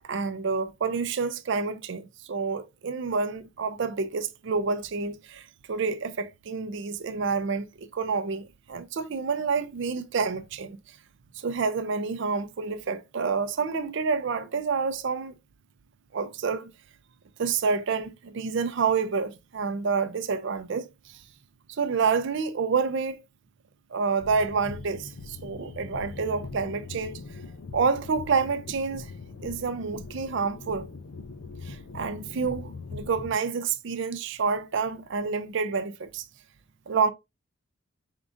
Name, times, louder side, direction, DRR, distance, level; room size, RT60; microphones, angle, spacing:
voice 1, 0.1-10.8 11.4-15.3 16.1-16.7 17.4-21.2 21.8-23.2 23.9-27.2 27.7-29.1 29.4-30.9 31.6-36.2 36.9-37.1, right 5 dB, 55° right, 0.4 m, -28 dB
sound 1, 24.2-33.4, left 4 dB, 65° left, 0.5 m, -41 dB
4.9 x 3.6 x 2.5 m
head